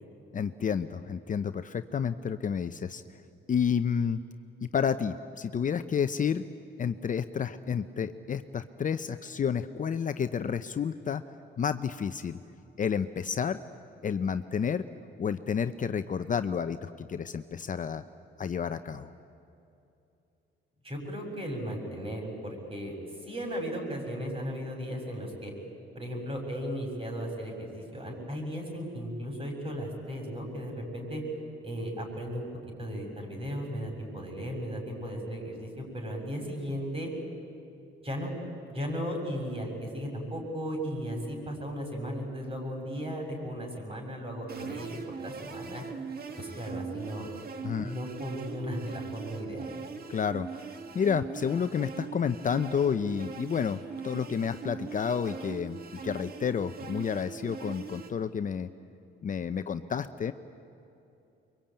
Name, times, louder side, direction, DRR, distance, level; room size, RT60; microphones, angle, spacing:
voice 1, 0.3-3.0 3.5-4.2 4.6-6.4 6.8-11.2 11.6-12.4 12.8-13.6 14.0-14.9 15.2-18.0 18.4-19.1 47.6-47.9 50.1-55.8 56.0-58.7 59.2-60.3, left 7 dB, 40° left, 10 dB, 0.8 m, -30 dB
voice 2, 20.8-22.9 23.2-25.5 25.9-31.2 31.6-32.5 32.8-37.1 38.0-38.3 38.7-45.8 46.4-47.3 47.8-49.7, equal, 30° right, 2 dB, 6.8 m, -36 dB
sound 1, 44.5-58.1, right 5 dB, 50° right, 2.0 m, -41 dB
24.0 x 23.5 x 8.9 m, 2.7 s
cardioid pair, 90°, 20 cm